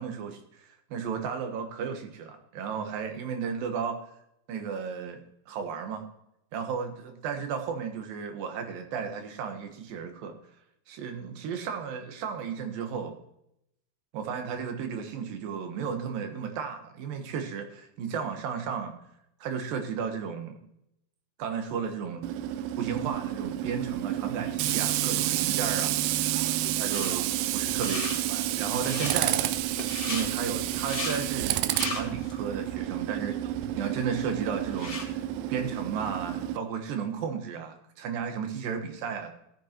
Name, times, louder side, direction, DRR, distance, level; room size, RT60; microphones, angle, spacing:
voice 1, 0.0-4.0 4.5-5.2 5.5-6.0 6.5-10.3 10.9-13.1 14.1-18.9 19.4-20.6 21.4-22.3 22.8-26.4 26.8-27.2 27.5-29.6 30.1-35.2 35.5-39.3, right 6 dB, 70° right, 5 dB, 2.8 m, -34 dB
Tools, 22.2-36.6, right 13 dB, 85° right, 1.9 m, -30 dB
sound 1, 26.9-27.2 27.6-28.2 28.7-29.2 29.8-30.3 30.7-31.2 31.6-32.3 32.8-32.9 33.6-33.7 34.0-35.1, left 3 dB, 50° left, 0.6 m, -36 dB
17.0 x 8.3 x 3.0 m, 0.79 s
omnidirectional pair, 4.5 m